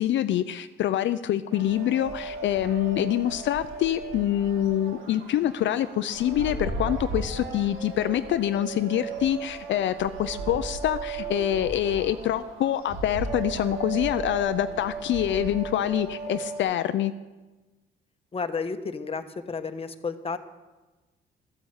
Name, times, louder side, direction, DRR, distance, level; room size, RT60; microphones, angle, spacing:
voice 1, 0.0-17.1, left 11 dB, 70° left, 11 dB, 0.5 m, -26 dB
sound 1, 1.5-16.6, right 4 dB, 90° right, 2.0 m, -36 dB
voice 2, 18.3-20.4, left 4 dB, 30° left, 8 dB, 1.1 m, -32 dB
13.5 x 8.2 x 7.9 m, 1.2 s
cardioid pair, 90°, 20 cm